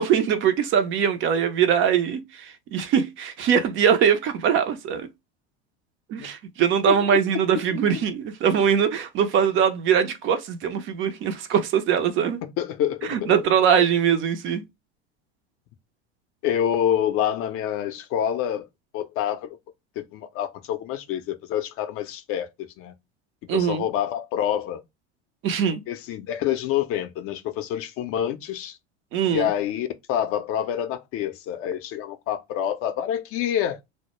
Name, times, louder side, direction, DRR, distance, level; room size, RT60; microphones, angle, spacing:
voice 1, 0.0-5.1 6.1-12.4 13.1-14.6 23.5-23.8 25.4-25.8 29.1-29.5, right 8 dB, 35° right, 0.5 m, -22 dB
voice 2, 6.9-7.6 7.9-8.0 12.4-13.3 16.4-18.7 18.9-19.5 20.0-22.5 22.8-22.9 23.5-24.8 25.9-28.8 29.3-33.8, left 10 dB, 40° left, 0.5 m, -27 dB
2.1 x 2.1 x 2.9 m
hypercardioid pair, 95°, 34 cm